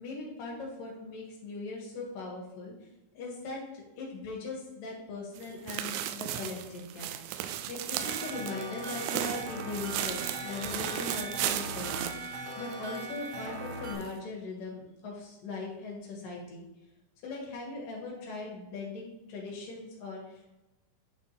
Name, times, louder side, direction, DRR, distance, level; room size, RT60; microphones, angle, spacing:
voice 1, 0.0-2.7 3.2-7.1 7.7-16.7 17.2-20.5, left 3 dB, 75° left, -2 dB, 3.5 m, -40 dB
sound 1, 5.4-13.1 13.4-13.5 14.0-14.1, right 12 dB, 85° right, 2.3 m, -35 dB
sound 2, 8.0-13.9, right 2 dB, 60° right, 1.6 m, -40 dB
10.0 x 3.6 x 4.4 m, 0.99 s
omnidirectional pair, 4.0 m